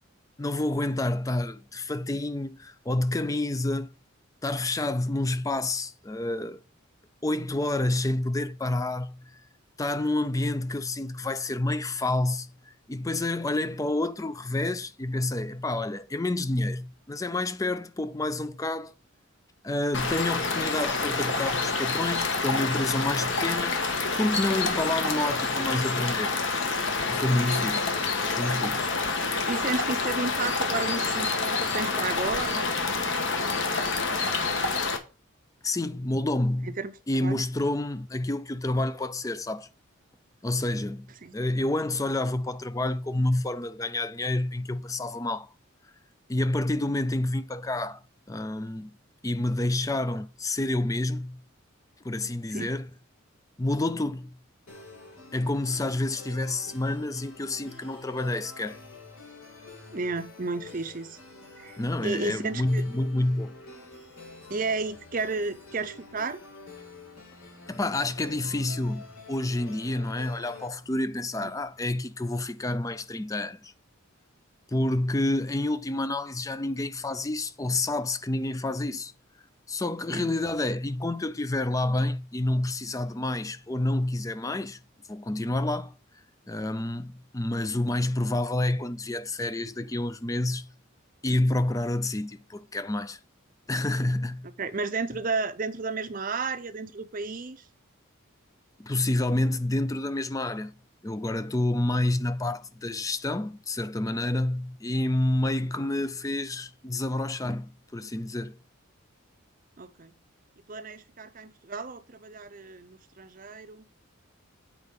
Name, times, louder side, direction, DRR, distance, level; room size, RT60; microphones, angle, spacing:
voice 1, 0.4-3.9 4.4-6.6 7.2-9.4 9.8-12.5 12.9-18.9 19.6-23.8 24.2-26.3 27.1-27.9 28.4-28.9 35.6-36.8 37.1-39.7 40.4-45.5 46.3-48.0 48.3-48.9 49.2-51.4 52.0-52.9 53.6-54.4 55.3-58.8 61.8-63.5 67.7-73.7 74.7-79.1 79.7-84.8 85.1-85.9 86.5-90.7 91.2-93.2 93.7-94.5 98.8-100.7 101.0-108.6, left 2 dB, 15° left, 0.4 m, -28 dB
sound 1, 19.9-35.0, left 4 dB, 60° left, 1.3 m, -28 dB
voice 2, 29.5-33.6 36.8-36.9 37.2-37.4 41.2-41.3 52.5-52.7 59.9-61.2 61.6-62.8 64.5-66.4 71.4-71.5 80.1-80.3 94.6-97.6 109.8-110.1 110.7-113.8, right 3 dB, 40° right, 0.6 m, -33 dB
sound 2, 54.7-70.7, left 3 dB, 80° left, 4.1 m, -47 dB
8.2 x 4.6 x 5.3 m
head